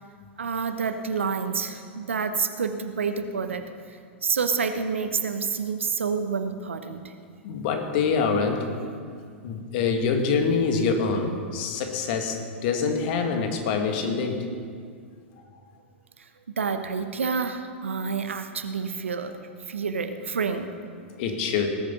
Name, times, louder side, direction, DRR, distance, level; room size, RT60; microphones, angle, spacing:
voice 1, 0.4-3.7 4.2-7.1 16.6-19.4 19.7-20.7, right 5 dB, 75° right, 8 dB, 1.0 m, -28 dB
voice 2, 7.4-8.7 9.4-14.4 21.2-21.7, left 5 dB, 50° left, 4 dB, 1.9 m, -25 dB
19.0 x 8.8 x 5.7 m, 2.2 s
figure-of-eight pair, 95°, 7 cm